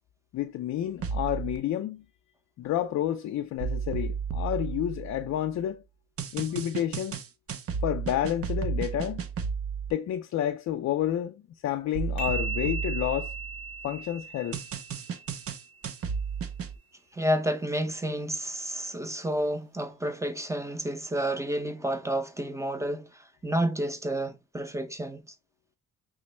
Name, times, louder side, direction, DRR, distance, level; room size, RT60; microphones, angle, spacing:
voice 1, 0.3-2.0 2.6-5.8 6.3-7.2 7.8-9.3 9.9-13.3 13.8-14.6, left 11 dB, 60° left, 0.5 m, -30 dB
sound 1, 1.0-1.6 3.6-5.5 6.2-9.9 11.9-13.8 14.5-16.8, right 6 dB, 50° right, 0.7 m, -33 dB
sound 2, 12.2-15.7, right 4 dB, 65° right, 2.2 m, -37 dB
voice 2, 17.1-25.2, right 1 dB, 10° right, 0.6 m, -30 dB
5.9 x 2.0 x 3.1 m
cardioid pair, 90°, 30 cm